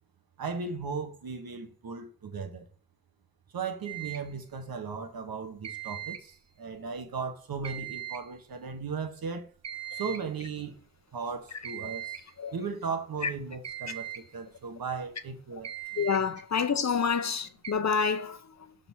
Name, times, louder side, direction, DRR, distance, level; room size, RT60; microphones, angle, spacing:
voice 1, 0.4-2.7 3.5-9.5 9.9-10.8 11.1-12.2 12.5-15.7, right 5 dB, 80° right, 1.3 m, -36 dB
sound 1, 3.9-4.3 5.6-6.3 7.6-8.3 9.6-10.3 11.6-12.3 13.6-14.3 15.6-16.3 17.6-17.7, right 11 dB, 45° right, 1.0 m, -39 dB
voice 2, 15.9-18.8, left 6 dB, 50° left, 0.8 m, -28 dB
7.0 x 4.1 x 4.5 m
cardioid pair, 75°, 35 cm